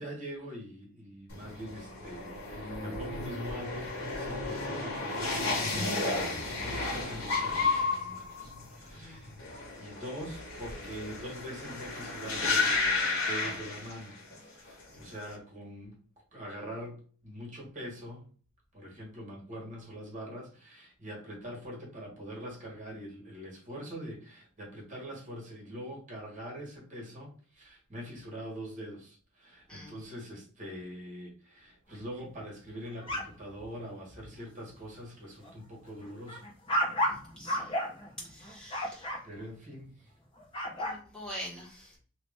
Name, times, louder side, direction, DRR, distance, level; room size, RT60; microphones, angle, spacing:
voice 1, 0.0-9.4 9.7-16.0 16.3-18.3 18.7-36.5 38.6-39.0 39.2-40.1, equal, 40° right, -2 dB, 1.5 m, -43 dB
sound 1, 1.3-14.4 14.7-15.2, left 3 dB, 85° left, 1.3 m, -33 dB
voice 2, 9.0-9.4 14.9-15.0 29.7-29.9 37.4-37.7 38.3-39.1 40.8-42.0, equal, 5° left, -5 dB, 1.7 m, -45 dB
sound 2, 32.9-33.7 34.1-34.3 34.7-35.0 35.4-39.2 40.4-41.0, equal, 25° left, 1.1 m, -33 dB
2.9 x 2.9 x 3.6 m, 0.43 s
head